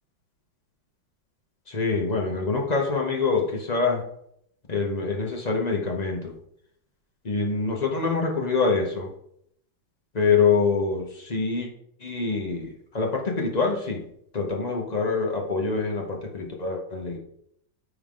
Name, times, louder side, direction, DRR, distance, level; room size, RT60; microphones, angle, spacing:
voice 1, 1.7-4.0 4.7-6.3 7.2-9.1 10.1-11.7 12.0-14.0 14.3-17.2, left 4 dB, 40° left, 1 dB, 0.5 m, -25 dB
9.4 x 3.7 x 3.7 m, 0.71 s
omnidirectional pair, 2.2 m